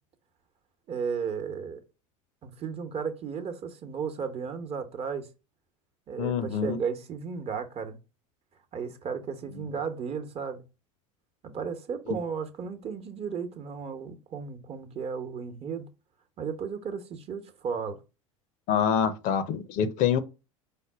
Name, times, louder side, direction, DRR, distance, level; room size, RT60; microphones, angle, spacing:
voice 1, 0.9-1.8 2.4-5.3 6.1-8.0 8.7-10.6 11.4-15.9 16.4-18.0, right 6 dB, 35° right, 1.0 m, -34 dB
voice 2, 6.2-6.8 9.6-9.7 12.1-12.2 18.7-20.2, left 8 dB, 50° left, 0.7 m, -26 dB
5.1 x 2.1 x 4.6 m
hypercardioid pair, 85°, 17 cm